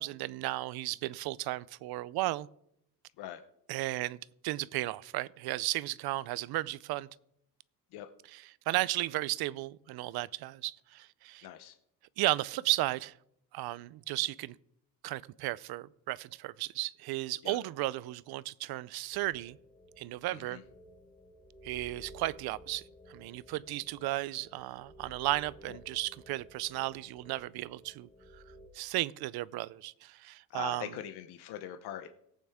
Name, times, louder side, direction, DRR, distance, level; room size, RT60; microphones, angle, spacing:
voice 1, 0.0-2.5 3.7-4.2 4.4-7.1 8.3-11.5 12.2-13.2 13.5-14.5 15.0-19.6 20.0-20.6 21.6-28.4 28.7-30.9, right 17 dB, 70° right, 21 dB, 0.5 m, -34 dB
voice 2, 11.4-11.8 17.4-17.6 20.3-20.6 25.7-25.8 30.5-32.1, left 11 dB, 70° left, 8 dB, 0.7 m, -42 dB
sound 1, 19.1-28.7, equal, 10° left, 1.2 m, -55 dB
17.5 x 8.7 x 3.5 m, 0.75 s
cardioid pair, 170°, 40 cm